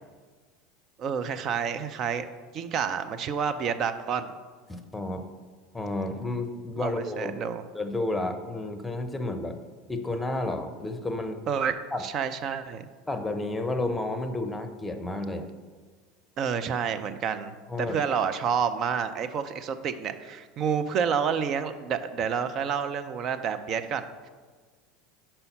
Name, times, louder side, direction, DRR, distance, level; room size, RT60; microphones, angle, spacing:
voice 1, 1.0-2.3 2.5-4.3 6.8-7.6 11.5-12.8 16.4-17.5 17.8-24.3, right 7 dB, 45° right, 10 dB, 0.5 m, -29 dB
voice 2, 4.7-5.2 5.7-7.3 7.7-9.6 9.9-11.4 11.9-12.0 13.1-15.5 17.7-18.0, left 2 dB, 10° left, 7 dB, 0.8 m, -31 dB
5.6 x 4.4 x 5.5 m, 1.5 s
hypercardioid pair, 80°, 0 cm